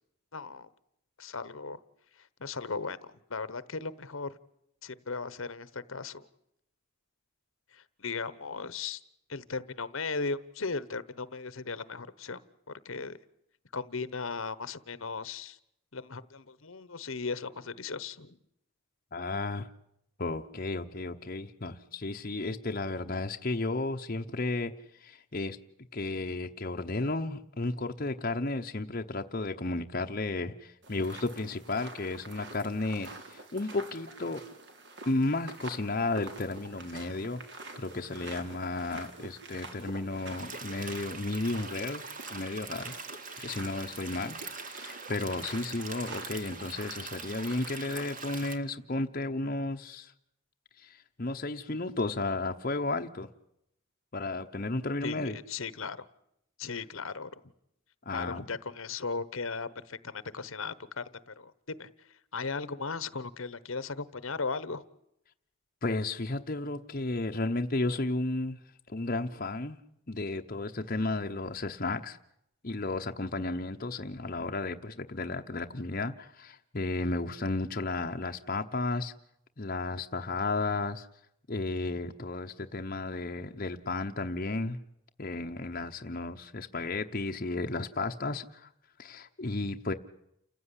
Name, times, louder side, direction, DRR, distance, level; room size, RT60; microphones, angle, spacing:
voice 1, 0.3-0.7 1.2-1.8 2.2-4.4 4.8-6.3 7.7-9.0 9.3-12.4 12.8-13.2 13.7-15.6 15.9-18.4 55.0-56.0 56.6-57.3 58.1-61.9 62.3-64.8, left 4 dB, 70° left, 16 dB, 1.1 m, -37 dB
voice 2, 19.1-19.7 20.2-24.7 25.0-25.6 25.9-34.4 35.1-42.9 43.4-44.4 44.7-50.1 50.8-53.3 54.1-55.4 58.1-58.4 65.8-68.6 68.9-69.8 70.1-72.2 72.6-79.1 79.6-81.1 81.5-84.8 85.2-88.7 89.0-89.9, left 2 dB, 40° left, 4 dB, 1.0 m, -33 dB
sound 1, 30.8-48.5, right 3 dB, 55° right, 3.5 m, -47 dB
sound 2, 40.4-48.6, right 4 dB, 40° right, 2.1 m, -43 dB
29.5 x 15.5 x 9.9 m, 0.79 s
head